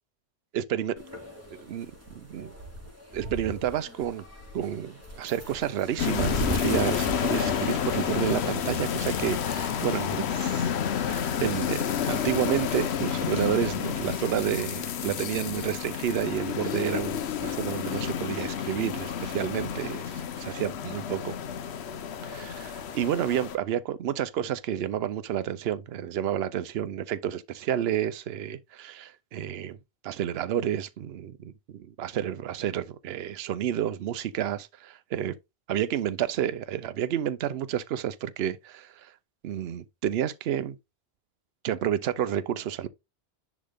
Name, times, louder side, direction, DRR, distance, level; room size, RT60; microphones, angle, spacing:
voice 1, 0.5-1.0 1.5-2.5 3.1-4.2 4.5-10.7 11.0-21.3 22.2-29.8 30.0-35.3 35.7-39.1 39.4-40.8 41.6-42.9, right 10 dB, 70° right, 0.9 m, -30 dB
sound 1, 1.0-13.7, right 1 dB, 15° right, 2.3 m, -40 dB
sound 2, 6.0-23.6, left 8 dB, 85° left, 1.0 m, -30 dB
10.0 x 3.6 x 3.5 m
omnidirectional pair, 1.1 m